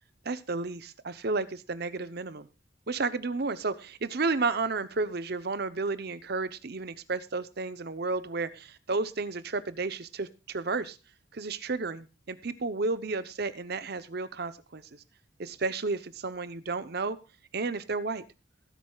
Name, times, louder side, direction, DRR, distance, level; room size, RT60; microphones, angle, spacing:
voice 1, 0.2-2.5 2.9-11.0 11.3-15.0 15.4-17.2 17.5-18.2, right 3 dB, 55° right, 14 dB, 0.8 m, -32 dB
19.5 x 10.0 x 2.3 m, 0.29 s
head